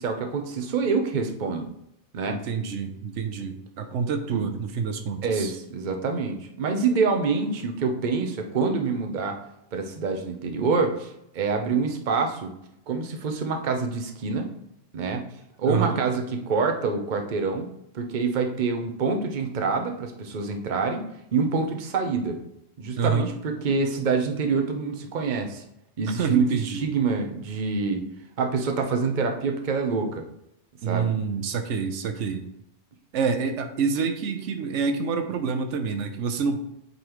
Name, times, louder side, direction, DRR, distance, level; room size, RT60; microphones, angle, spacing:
voice 1, 0.0-1.7 2.1-2.4 4.3-4.5 5.2-9.4 9.7-11.1 11.3-12.5 12.9-14.5 14.9-15.2 15.6-17.7 17.9-21.0 21.3-22.4 22.8-25.6 26.0-28.0 28.4-30.2 30.9-31.1, right 4 dB, 45° right, 4 dB, 0.9 m, -26 dB
voice 2, 2.3-5.5 15.6-16.0 23.0-23.3 26.2-26.8 30.8-32.4 33.1-36.6, right 5 dB, 85° right, 6 dB, 1.0 m, -27 dB
8.2 x 3.9 x 3.0 m, 0.80 s
omnidirectional pair, 1.2 m